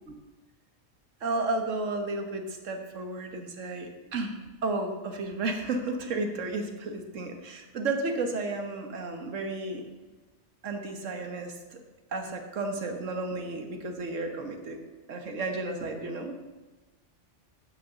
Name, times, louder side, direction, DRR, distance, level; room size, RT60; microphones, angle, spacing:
voice 1, 1.2-9.8 10.6-11.8 12.1-14.8 15.1-16.3, right 2 dB, 90° right, 5 dB, 1.6 m, -33 dB
8.8 x 6.3 x 6.6 m, 1.2 s
omnidirectional pair, 1.3 m